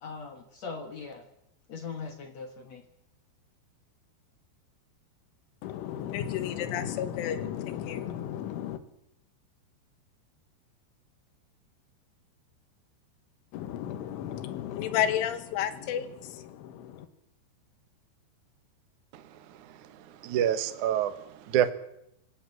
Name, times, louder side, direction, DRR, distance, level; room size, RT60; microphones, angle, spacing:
voice 1, 0.0-1.3 1.7-2.8, left 4 dB, 55° left, 1.9 m, -40 dB
voice 2, 5.6-8.8 13.5-17.1, left 10 dB, 85° left, 3.9 m, -32 dB
voice 3, 20.2-21.7, right 10 dB, 75° right, 1.8 m, -27 dB
26.0 x 17.0 x 7.7 m
omnidirectional pair, 5.5 m